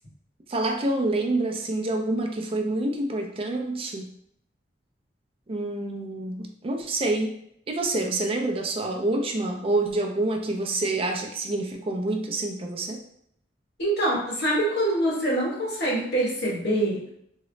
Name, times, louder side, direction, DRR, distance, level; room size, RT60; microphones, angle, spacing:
voice 1, 0.5-4.1 5.5-7.4 7.7-13.0, right 2 dB, 30° right, 2 dB, 0.4 m, -27 dB
voice 2, 13.8-17.0, right 1 dB, 65° left, -5 dB, 1.2 m, -25 dB
3.6 x 2.0 x 3.1 m, 0.71 s
head